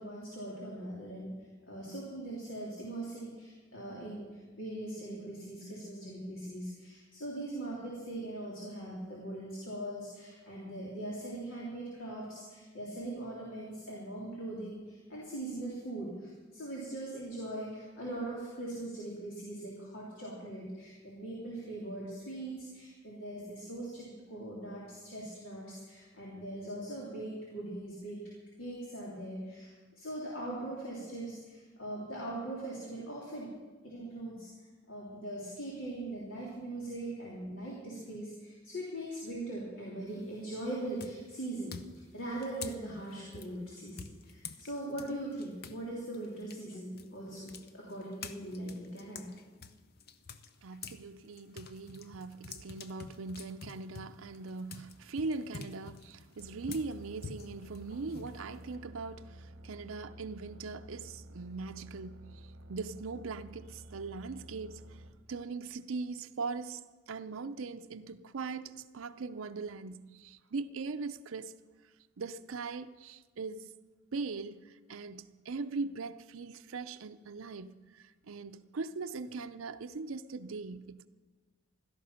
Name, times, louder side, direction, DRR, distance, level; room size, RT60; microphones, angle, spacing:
voice 1, 0.0-1.3 1.7-28.2 28.6-33.5 33.8-34.5 34.9-49.3, right 1 dB, 80° left, 3.3 m, -41 dB
sound 1, 40.1-40.5 41.0-45.8 46.1-51.0 51.4-58.8, left 5 dB, 50° left, 0.7 m, -48 dB
voice 2, 50.6-65.0 65.3-71.5 72.2-73.7 74.1-81.1, right 4 dB, 90° right, 0.6 m, -40 dB
sound 2, 56.4-65.1, right 1 dB, 65° right, 1.3 m, -51 dB
16.5 x 13.0 x 5.7 m
head